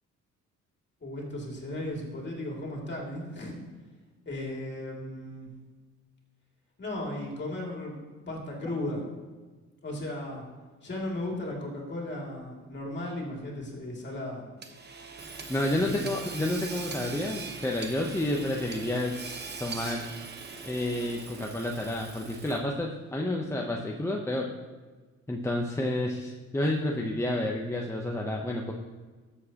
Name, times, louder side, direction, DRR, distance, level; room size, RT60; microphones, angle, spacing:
voice 1, 1.0-3.6 4.3-5.5 6.8-9.0 9.8-10.4 10.8-14.4 15.8-16.0, left 1 dB, 35° left, -2 dB, 2.6 m, -36 dB
Hammer / Sawing, 14.6-22.8, right 4 dB, 35° right, 1.1 m, -41 dB
voice 2, 15.5-19.2 19.6-20.1 20.7-24.5 25.3-28.7, left 1 dB, 10° left, 0 dB, 0.8 m, -30 dB
13.0 x 7.1 x 2.9 m, 1.4 s
cardioid pair, 90°, 30 cm